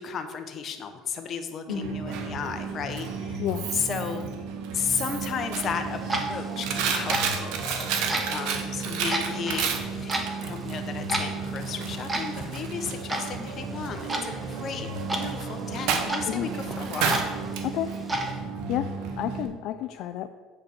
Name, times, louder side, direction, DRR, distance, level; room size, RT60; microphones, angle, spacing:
voice 1, 0.0-3.4 3.7-4.3 4.7-7.9 8.2-17.3, left 7 dB, 45° left, 7 dB, 0.9 m, -34 dB
voice 2, 1.7-2.0 3.4-3.7 16.3-16.5 17.6-17.9 18.7-18.9 19.2-20.3, left 12 dB, 65° left, 9 dB, 0.3 m, -30 dB
Coin (dropping), 1.7-19.5, right 5 dB, 75° right, 1.1 m, -32 dB
Clock, 5.7-18.3, right 1 dB, 15° right, 1.2 m, -35 dB
8.4 x 5.1 x 4.5 m, 1.4 s
supercardioid pair, 100°, 0 cm